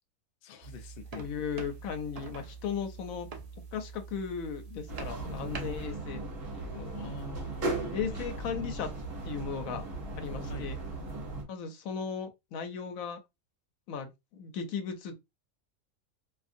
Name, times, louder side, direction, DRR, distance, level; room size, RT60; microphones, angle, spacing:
voice 1, 0.4-1.3 6.9-8.2 10.4-10.8, left 4 dB, 60° left, 0.6 m, -46 dB
sound 1, 0.6-5.9, right 5 dB, 80° right, 0.3 m, -45 dB
voice 2, 1.1-3.3 3.7-6.2 6.5-7.1 7.9-8.9 9.3-9.8 10.2-10.8 11.5-13.2 13.9-15.1, left 6 dB, 80° left, 1.0 m, -36 dB
sound 2, 4.9-11.4, right 2 dB, 45° right, 1.2 m, -37 dB
2.6 x 2.6 x 2.5 m
omnidirectional pair, 1.4 m